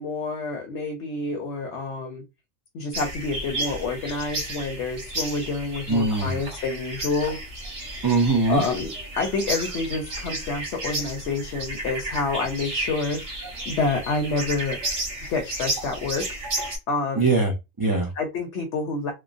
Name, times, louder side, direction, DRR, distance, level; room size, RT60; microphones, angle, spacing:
voice 1, 0.0-2.2 2.7-7.4 8.5-13.2 13.7-14.8 15.3-16.3 16.9-17.3 18.2-19.1, left 3 dB, 65° left, 3 dB, 0.9 m, -28 dB
sound 1, 2.9-16.8, right 2 dB, 80° right, 1.4 m, -33 dB
voice 2, 5.9-6.4 8.0-8.6 17.2-18.1, right 3 dB, 25° right, -2 dB, 0.5 m, -22 dB
2.9 x 2.1 x 2.5 m, 0.23 s
omnidirectional pair, 1.3 m